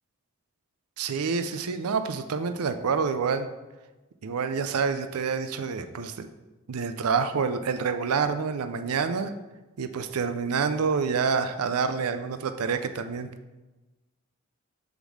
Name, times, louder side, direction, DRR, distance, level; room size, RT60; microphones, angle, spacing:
voice 1, 1.0-3.5 4.2-6.3 6.7-9.3 9.8-13.3, right 5 dB, 85° right, 10 dB, 0.5 m, -27 dB
7.0 x 3.7 x 6.2 m, 1.1 s
head